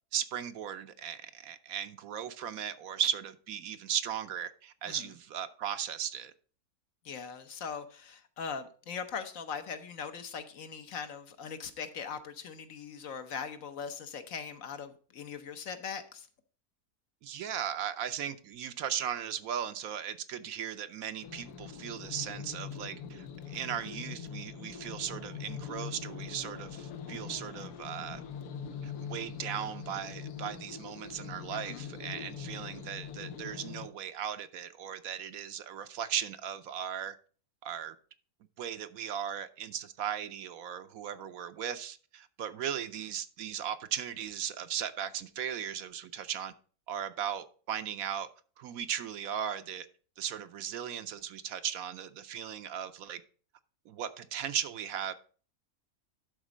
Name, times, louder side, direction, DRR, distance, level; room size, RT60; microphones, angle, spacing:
voice 1, 0.1-6.3 17.2-28.2 28.8-37.2 37.6-37.9 38.6-46.5 46.9-48.3 48.6-49.9 50.2-53.2 53.9-55.1, right 9 dB, 70° right, 1.0 m, -37 dB
voice 2, 7.0-16.3 31.5-31.8, left 6 dB, 65° left, 1.2 m, -40 dB
sound 1, 21.2-33.9, left 7 dB, 90° left, 1.4 m, -43 dB
11.5 x 4.0 x 5.0 m
omnidirectional pair, 1.6 m